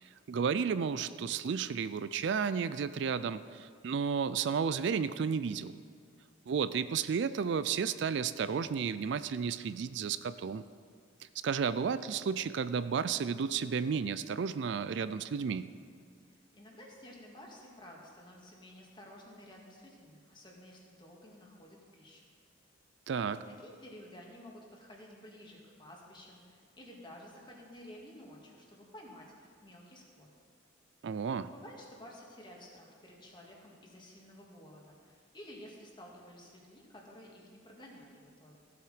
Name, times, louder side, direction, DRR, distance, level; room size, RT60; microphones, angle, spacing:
voice 1, 0.0-5.7 6.5-10.6 11.4-15.7 23.1-23.4 31.0-31.5, right 6 dB, 65° right, 14 dB, 0.4 m, -32 dB
voice 2, 16.2-22.2 23.2-30.3 31.5-38.6, left 1 dB, 25° left, -1 dB, 1.9 m, -52 dB
15.0 x 8.0 x 5.1 m, 2.1 s
head